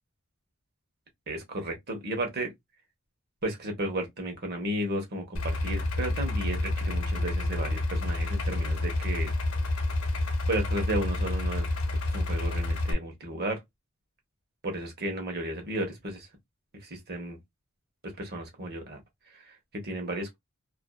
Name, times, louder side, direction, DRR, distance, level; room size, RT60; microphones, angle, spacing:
voice 1, 1.3-2.5 3.4-9.3 10.5-11.7 12.0-13.6 14.6-16.3 16.8-17.4 18.0-19.0 19.3-20.4, right 1 dB, 45° right, 0.9 m, -33 dB
Idling, 5.3-12.9, left 2 dB, 75° left, 0.7 m, -29 dB
2.5 x 2.3 x 2.2 m
head